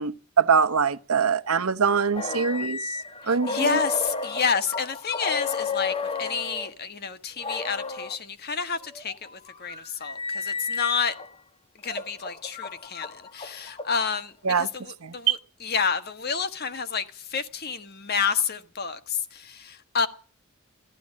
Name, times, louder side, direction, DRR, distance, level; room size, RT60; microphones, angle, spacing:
voice 1, 0.0-2.8 3.3-3.8 14.4-14.7 15.0-15.4, right 6 dB, 80° right, 0.9 m, -23 dB
sound 1, 2.1-6.7 7.4-8.2 8.9-11.3 11.8-14.2, left 4 dB, 25° left, 1.1 m, -33 dB
voice 2, 3.2-11.1 11.8-20.1, left 6 dB, 45° left, 1.4 m, -29 dB
17.0 x 11.5 x 7.4 m
head